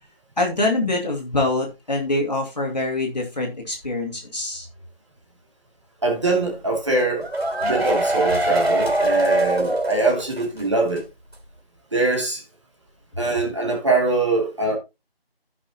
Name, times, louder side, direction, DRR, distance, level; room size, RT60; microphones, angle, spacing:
voice 1, 0.4-4.7, left 2 dB, 45° left, 2.5 m, -24 dB
voice 2, 6.0-7.3 7.6-11.0 11.9-12.4 13.2-14.8, right 3 dB, 30° right, 2.6 m, -22 dB
sound 1, 7.0-10.6 10.9-11.0 11.3-11.4, right 1 dB, 90° right, 3.2 m, -23 dB
15.0 x 6.1 x 2.9 m
figure-of-eight pair, 170°, 30 cm